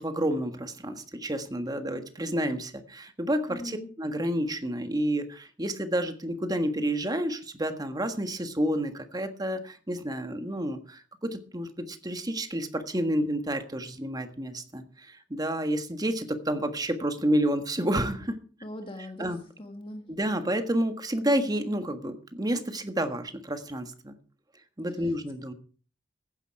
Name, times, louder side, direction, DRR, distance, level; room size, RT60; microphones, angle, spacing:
voice 1, 0.0-18.4 19.2-19.4 20.1-24.1 24.8-25.5, right 1 dB, 20° right, 7 dB, 1.5 m, -30 dB
voice 2, 3.5-3.9 18.6-20.0, left 1 dB, 30° left, 4 dB, 1.7 m, -40 dB
15.0 x 10.0 x 4.7 m, 0.40 s
head